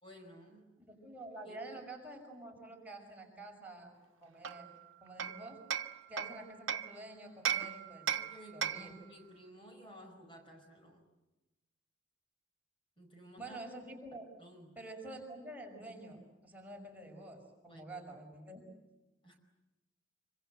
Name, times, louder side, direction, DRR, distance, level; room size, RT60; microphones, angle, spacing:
voice 1, 0.0-0.6 1.4-1.6 8.1-11.1 13.0-13.6 14.4-14.8 17.7-17.8 19.2-19.3, equal, 25° left, 3 dB, 4.9 m, -55 dB
voice 2, 0.8-3.9 4.2-4.7 5.0-5.6 6.1-8.1 8.5-8.9 13.4-14.3 14.8-18.6, right 2 dB, 10° right, 0 dB, 5.6 m, -48 dB
Hammer, 4.4-7.0 7.5-9.0, right 8 dB, 90° right, 0.9 m, -37 dB
26.0 x 25.5 x 8.0 m, 1.0 s
head